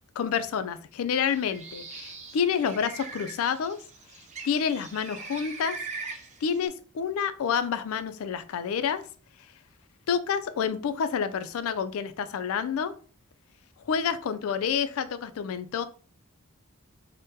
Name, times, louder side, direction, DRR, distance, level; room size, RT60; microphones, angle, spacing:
voice 1, 0.2-3.8 4.4-5.8 6.4-9.0 10.1-12.9 13.9-15.8, left 7 dB, 65° left, 0.3 m, -28 dB
Bird, 1.1-6.7, right 4 dB, 30° right, 0.4 m, -41 dB
3.6 x 2.1 x 2.6 m
head